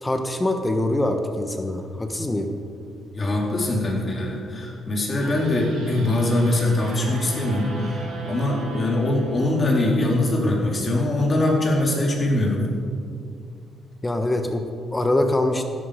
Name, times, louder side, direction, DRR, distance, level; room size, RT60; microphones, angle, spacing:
voice 1, 0.0-2.5 14.0-15.6, left 1 dB, 15° left, 5 dB, 1.2 m, -24 dB
voice 2, 3.1-12.6, left 1 dB, 35° left, -1 dB, 3.9 m, -22 dB
sound 1, 5.2-10.5, right 2 dB, 80° right, 4.6 m, -39 dB
16.0 x 12.5 x 5.2 m, 2.3 s
cardioid pair, 90°, 0 cm